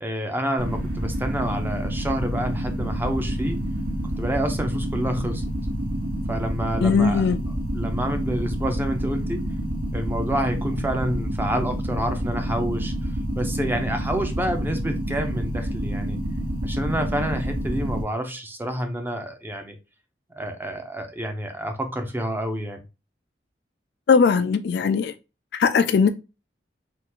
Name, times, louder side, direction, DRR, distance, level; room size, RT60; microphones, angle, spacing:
voice 1, 0.0-3.6 4.2-5.4 6.3-7.3 7.7-9.5 9.9-12.9 13.4-16.2 16.6-19.7 20.4-22.8, right 1 dB, 10° right, 0.5 m, -28 dB
sound 1, 0.6-18.0, equal, 65° right, 1.5 m, -28 dB
voice 2, 6.8-7.4 24.1-25.1 25.5-26.1, left 5 dB, 65° left, 0.3 m, -19 dB
3.6 x 2.4 x 2.8 m
head